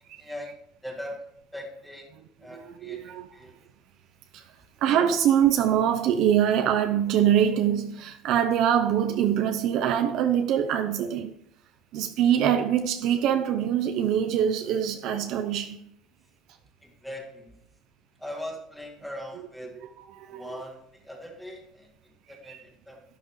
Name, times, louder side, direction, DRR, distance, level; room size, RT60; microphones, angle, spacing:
voice 1, 0.2-0.6 0.8-2.1 2.4-3.6 16.8-17.6 18.2-19.8 20.3-23.0, left 1 dB, ahead, 2.0 m, -41 dB
voice 2, 2.8-3.3 4.3-4.4 4.8-11.3 11.9-15.9 20.1-20.4 22.5-22.6, right 9 dB, 60° right, 0.7 m, -24 dB
12.0 x 11.5 x 3.2 m
cardioid pair, 140°, 0 cm